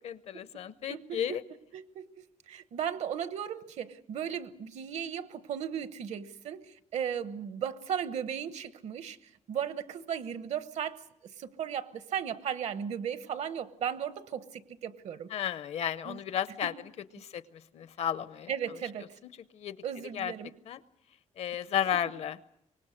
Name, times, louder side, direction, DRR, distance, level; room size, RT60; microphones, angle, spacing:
voice 1, 0.0-1.4 15.3-16.7 17.1-17.4 17.7-18.5 19.5-19.8 20.1-20.3 20.7-20.8 21.4-22.4, left 9 dB, 65° left, 15 dB, 0.7 m, -33 dB
voice 2, 0.9-1.4 1.7-2.1 2.5-6.6 6.9-9.2 9.5-11.0 11.4-15.3 16.0-16.2 18.5-19.1 19.8-20.5, right 8 dB, 70° right, 12 dB, 1.1 m, -36 dB
24.5 x 20.0 x 6.4 m, 0.80 s
wide cardioid pair, 170°, 12 cm